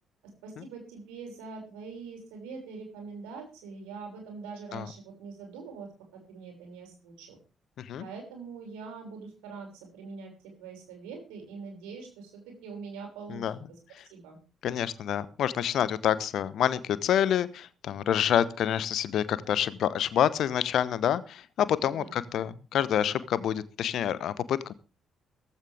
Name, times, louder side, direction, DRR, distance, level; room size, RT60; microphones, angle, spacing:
voice 1, 0.4-7.4 8.0-10.3 10.6-13.4 14.1-14.4 22.0-22.1, right 5 dB, 70° right, 2 dB, 6.0 m, -43 dB
voice 2, 14.6-24.7, left 10 dB, 60° left, 17 dB, 1.0 m, -27 dB
16.0 x 15.5 x 3.5 m, 0.33 s
figure-of-eight pair, 40°, 0 cm